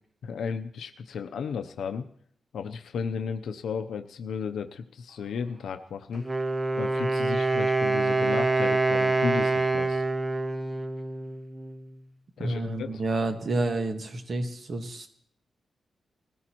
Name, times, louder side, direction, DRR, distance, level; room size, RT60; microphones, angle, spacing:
voice 1, 0.2-2.1 2.5-6.3 6.8-10.0 12.4-13.0, left 6 dB, 85° left, 8 dB, 0.6 m, -34 dB
Wind instrument woodwind instrument, 6.1-11.9, right 3 dB, 20° right, 0.7 m, -26 dB
voice 2, 12.4-15.1, right 2 dB, 50° right, 6 dB, 1.5 m, -29 dB
20.5 x 14.0 x 3.0 m, 0.65 s
wide cardioid pair, 120°, 0 cm